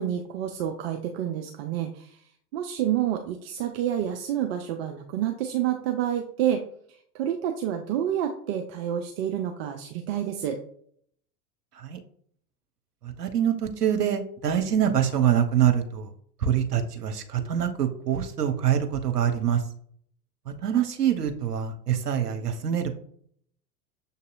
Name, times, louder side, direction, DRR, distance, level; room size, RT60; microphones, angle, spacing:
voice 1, 0.0-2.2 2.5-6.7 7.1-10.6, right 10 dB, 40° right, 5 dB, 0.5 m, -28 dB
voice 2, 13.0-16.1 16.4-19.6 20.5-22.9, right 9 dB, 80° right, 6 dB, 0.7 m, -25 dB
6.8 x 2.7 x 2.5 m, 0.63 s
figure-of-eight pair, 85°, 47 cm